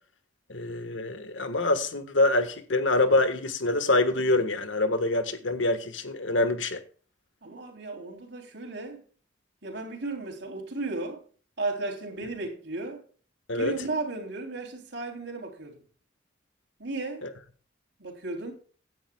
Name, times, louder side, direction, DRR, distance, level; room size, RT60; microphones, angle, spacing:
voice 1, 0.5-6.8 13.5-13.7, left 2 dB, 90° left, 1.4 m, -25 dB
voice 2, 7.4-9.0 9.6-11.2 11.6-13.0 13.5-15.8 16.8-17.3 18.0-18.5, right 3 dB, 65° right, 3.3 m, -35 dB
16.0 x 10.0 x 2.3 m
head